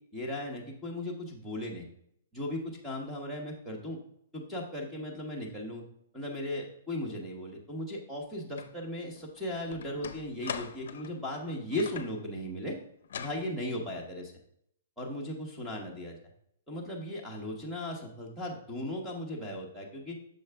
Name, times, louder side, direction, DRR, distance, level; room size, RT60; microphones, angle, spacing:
voice 1, 0.1-1.9 2.3-4.0 4.3-5.8 6.1-12.7 13.2-14.3 15.0-16.2 16.7-20.2, left 1 dB, ahead, -2 dB, 0.9 m, -37 dB
sound 1, 8.6-8.7 9.2-12.2 13.0-13.5, left 7 dB, 65° left, 0.5 m, -42 dB
6.5 x 4.7 x 3.4 m, 0.71 s
hypercardioid pair, 170°, 0 cm